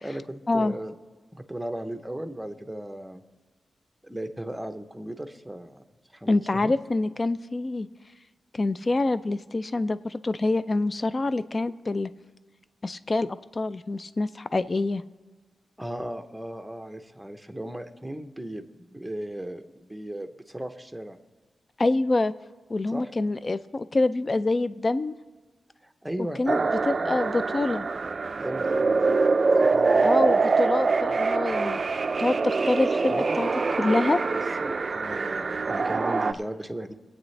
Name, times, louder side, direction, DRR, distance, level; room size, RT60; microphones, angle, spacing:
voice 1, 0.0-0.9 1.3-3.2 4.0-5.8 6.1-6.7 15.8-18.6 18.9-21.2 22.9-23.1 25.8-27.2 28.4-29.3 29.6-30.3 33.1-33.5 34.6-36.9, right 1 dB, 5° right, 6 dB, 0.7 m, -36 dB
voice 2, 6.3-7.9 8.5-12.1 12.8-15.0 21.8-22.3 22.7-25.1 26.4-27.8 30.0-31.8 32.2-33.5 33.8-34.2, left 2 dB, 30° left, 14 dB, 0.4 m, -26 dB
sound 1, 26.5-36.3, right 4 dB, 40° right, 0.4 m, -24 dB
22.5 x 8.4 x 3.2 m, 1.4 s
wide cardioid pair, 115°, 0 cm